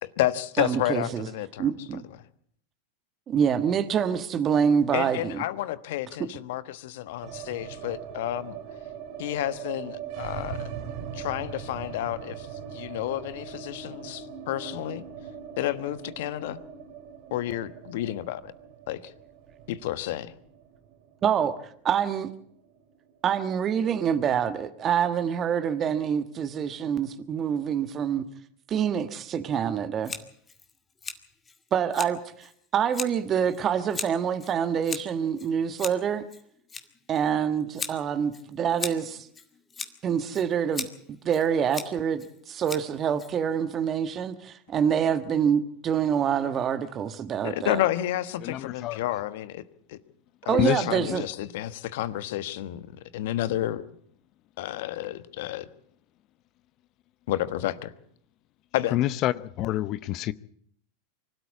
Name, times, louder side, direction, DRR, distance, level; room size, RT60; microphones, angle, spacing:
voice 1, 0.0-2.0 4.9-8.6 9.2-10.7 11.1-15.1 15.6-16.6 17.3-18.5 18.9-19.1 19.7-20.4 47.4-49.6 49.9-50.0 50.4-53.8 54.6-55.7 57.3-57.9 58.7-59.0, left 14 dB, 65° left, 1.2 m, -31 dB
voice 2, 0.6-1.3 1.6-2.0 3.3-5.4 21.2-21.6 21.8-22.3 23.2-28.2 28.7-30.1 31.7-36.2 37.1-39.3 40.0-40.9 41.2-47.8 50.5-51.2, right 8 dB, 35° right, 1.3 m, -26 dB
sound 1, 7.2-23.3 23.6-23.7 24.0-24.7, right 8 dB, 60° right, 3.0 m, -41 dB
Scissors, 30.0-43.7, left 5 dB, 20° left, 2.1 m, -40 dB
voice 3, 48.4-49.0 50.5-51.2 58.9-60.3, left 14 dB, 45° left, 0.7 m, -27 dB
24.5 x 13.0 x 8.5 m
hypercardioid pair, 105°, 0 cm